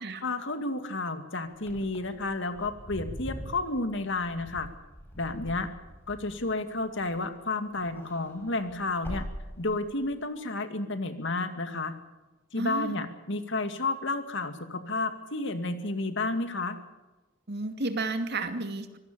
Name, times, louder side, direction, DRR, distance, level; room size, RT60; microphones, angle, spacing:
voice 1, 0.2-4.7 5.2-5.7 6.1-9.3 9.6-12.0 12.5-16.8, left 2 dB, 60° left, 8 dB, 2.3 m, -31 dB
Wind / Car, 1.5-7.4 7.7-10.1, equal, 10° left, 5.7 m, -43 dB
voice 2, 12.6-13.0 17.5-19.0, right 2 dB, 55° right, 7 dB, 2.3 m, -32 dB
25.0 x 17.5 x 7.0 m, 1.1 s
head